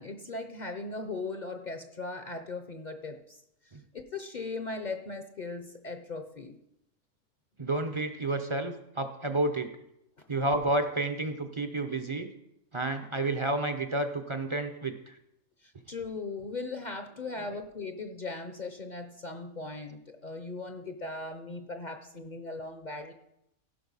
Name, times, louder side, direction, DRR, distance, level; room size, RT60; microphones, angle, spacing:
voice 1, 0.0-3.4 3.9-6.5 15.6-23.1, left 3 dB, 40° left, 6 dB, 0.8 m, -38 dB
voice 2, 7.6-9.7 10.3-12.3 12.7-15.2 17.4-17.5, right 2 dB, 30° right, 7 dB, 0.6 m, -30 dB
16.0 x 5.5 x 5.5 m, 0.82 s
omnidirectional pair, 1.3 m